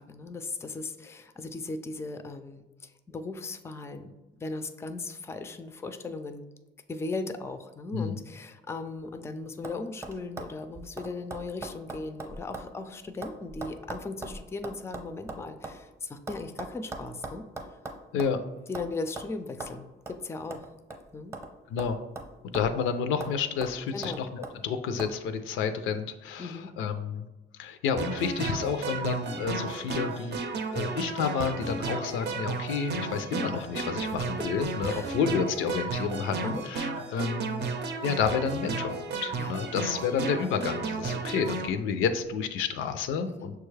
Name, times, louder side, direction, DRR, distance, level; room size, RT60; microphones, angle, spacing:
voice 1, 0.0-6.5 6.9-17.4 18.7-20.7 21.1-21.3 23.9-24.2 26.4-26.7 34.0-34.1 34.8-35.1 36.4-36.6 39.4-39.5 43.3-43.5, left 3 dB, 15° left, 9 dB, 0.3 m, -37 dB
sound 1, 8.9-9.3 9.6-9.8 10.0-12.7 13.0-15.8 16.3-18.4 18.7-18.9 19.2-19.3 19.6-19.7 20.1-20.2 20.5-21.5 21.8-22.8 23.2-23.3 23.6-24.6 25.0-25.1, right 2 dB, 15° right, 0.7 m, -40 dB
voice 2, 22.5-27.2 27.6-30.4 30.7-37.7 38.0-39.0 39.2-43.6, left 6 dB, 90° left, 9 dB, 0.4 m, -30 dB
sound 2, 28.0-41.7, right 3 dB, 60° right, 0.5 m, -33 dB
6.1 x 2.3 x 3.2 m, 1.1 s
cardioid pair, 90°, 20 cm